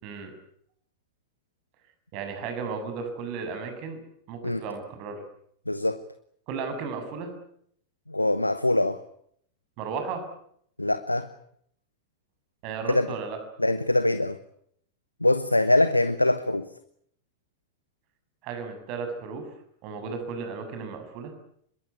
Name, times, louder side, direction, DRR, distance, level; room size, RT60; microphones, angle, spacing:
voice 1, 2.1-4.0 4.3-5.2 6.5-7.3 9.8-10.2 12.6-13.4 18.4-19.5 19.8-21.3, right 5 dB, 45° right, 7.3 m, -34 dB
voice 2, 5.7-6.0 8.1-9.0 10.8-11.3 12.9-13.1 13.6-14.4 15.2-16.7, left 1 dB, 85° left, 1.0 m, -23 dB
26.5 x 22.0 x 8.5 m
figure-of-eight pair, 90°, 0 cm